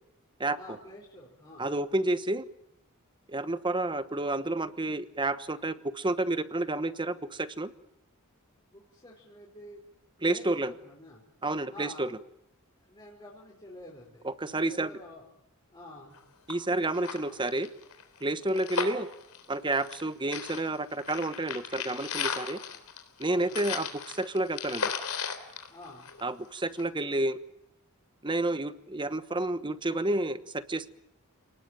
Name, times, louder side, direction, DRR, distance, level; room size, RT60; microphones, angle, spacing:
voice 1, 0.5-1.7 8.7-9.8 10.2-11.2 11.7-12.1 12.8-15.2 15.7-16.2 23.2-23.6 25.7-26.1, left 1 dB, 20° left, -4 dB, 4.9 m, -48 dB
voice 2, 1.6-2.5 3.3-7.7 10.2-10.7 11.4-12.1 14.2-14.9 16.5-17.7 18.2-19.1 19.5-22.6 23.2-24.9 26.2-27.4 28.2-30.9, right 2 dB, 20° right, 13 dB, 1.1 m, -30 dB
sound 1, 16.1-16.2 16.5-16.6 16.9-20.1 20.3-26.4 26.8-26.9, left 6 dB, 80° left, 3.7 m, -35 dB
29.5 x 19.5 x 9.2 m, 0.84 s
head